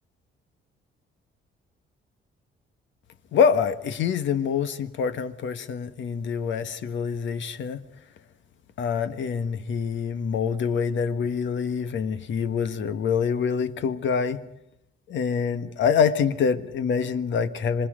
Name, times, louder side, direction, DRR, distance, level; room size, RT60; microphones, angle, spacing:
voice 1, 3.3-7.8 8.8-14.4 15.1-17.9, left 6 dB, 65° left, 1.4 m, -25 dB
27.5 x 25.5 x 5.1 m
cardioid pair, 160°, 21 cm